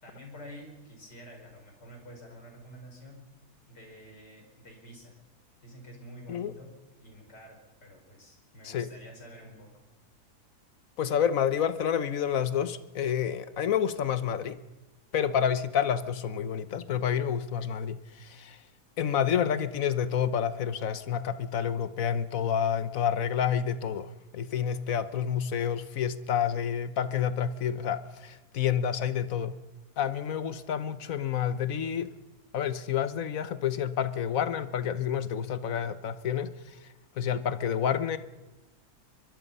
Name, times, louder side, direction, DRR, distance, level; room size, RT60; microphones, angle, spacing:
voice 1, 0.0-3.2 3.7-5.2 5.6-6.7 7.0-9.8, equal, 85° left, 2 dB, 5.6 m, -49 dB
voice 2, 11.0-14.6 15.1-18.6 19.0-29.5 30.0-32.1 32.5-36.8 37.2-38.2, left 8 dB, 60° left, 13 dB, 1.3 m, -29 dB
23.0 x 22.5 x 5.5 m, 1.1 s
omnidirectional pair, 1.8 m